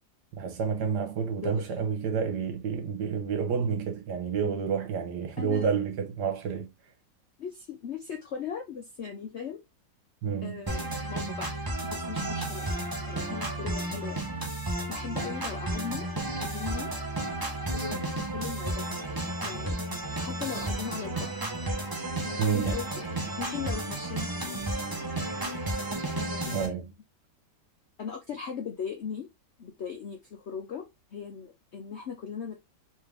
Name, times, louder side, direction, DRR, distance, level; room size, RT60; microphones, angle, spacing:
voice 1, 0.3-6.7 10.2-10.6 22.4-22.8 26.5-26.8, right 6 dB, 70° right, 1.5 m, -29 dB
voice 2, 5.4-5.8 7.4-9.6 10.4-11.5 11.8-14.2 14.6-16.1 16.3-16.9 17.7-18.0 18.3-18.8 19.2-19.8 20.2-21.4 22.2-24.7 26.1-26.9 28.0-29.3 29.6-32.6, left 7 dB, 65° left, 0.7 m, -39 dB
sound 1, 10.7-26.7, right 1 dB, 25° right, 0.5 m, -32 dB
3.6 x 3.2 x 3.4 m
omnidirectional pair, 1.9 m